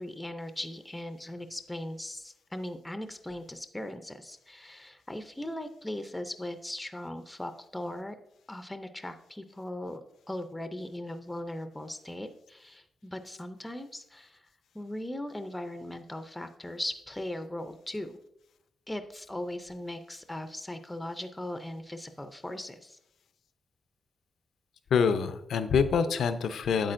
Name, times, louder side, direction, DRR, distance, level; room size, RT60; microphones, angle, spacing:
voice 1, 0.0-8.2 8.5-14.4 14.7-18.2 18.9-23.0, left 1 dB, 10° left, 8 dB, 0.5 m, -39 dB
voice 2, 24.9-26.9, left 6 dB, 75° left, 11 dB, 0.5 m, -26 dB
8.6 x 8.1 x 2.5 m, 0.81 s
wide cardioid pair, 135°, 0 cm